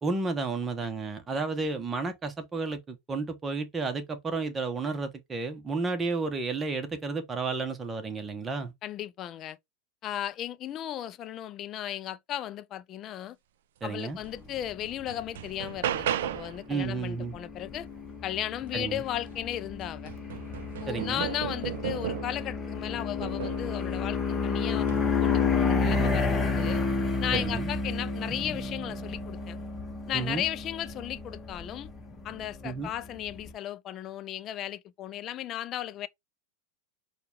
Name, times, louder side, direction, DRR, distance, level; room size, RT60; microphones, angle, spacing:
voice 1, 0.0-8.7 13.8-14.2 16.7-17.3 18.7-19.0 20.9-21.2 27.3-27.7 30.1-30.4 32.6-32.9, right 4 dB, 20° right, 1.0 m, -32 dB
voice 2, 8.8-9.6 10.0-13.4 13.8-17.9 18.2-20.1 20.8-24.9 25.2-26.8 27.2-29.6 30.1-31.9 32.2-36.1, left 11 dB, 40° left, 0.4 m, -35 dB
sound 1, 14.2-33.5, left 4 dB, 20° left, 1.1 m, -31 dB
sound 2, 14.2-14.3 14.8-16.6 19.0-19.1 19.5-22.5 23.2-23.7 24.8-25.0, right 10 dB, 80° right, 0.4 m, -34 dB
4.5 x 2.4 x 3.4 m
hypercardioid pair, 120°, 0 cm